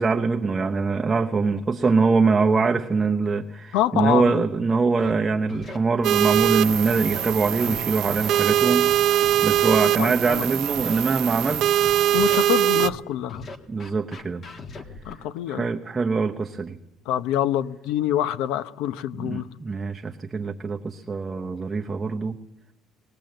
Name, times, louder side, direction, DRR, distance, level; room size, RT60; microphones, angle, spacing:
voice 1, 0.0-11.6 13.7-14.5 15.5-16.8 19.2-22.4, right 4 dB, 15° right, 0.8 m, -23 dB
voice 2, 3.7-4.4 9.8-10.4 12.1-13.4 15.0-15.7 17.1-19.4, left 12 dB, 90° left, 0.9 m, -26 dB
Scratching (performance technique), 5.0-5.1 5.5-5.8 6.3-7.3 7.6-7.8 8.1-8.4 8.8-9.8 10.2-10.4 10.7-11.0 11.5-12.4 12.8-13.0 13.3-15.1, left 3 dB, 30° left, 1.5 m, -39 dB
sound 1, 6.0-12.9, right 12 dB, 55° right, 0.7 m, -22 dB
19.5 x 19.0 x 7.8 m
cardioid pair, 170°, 0 cm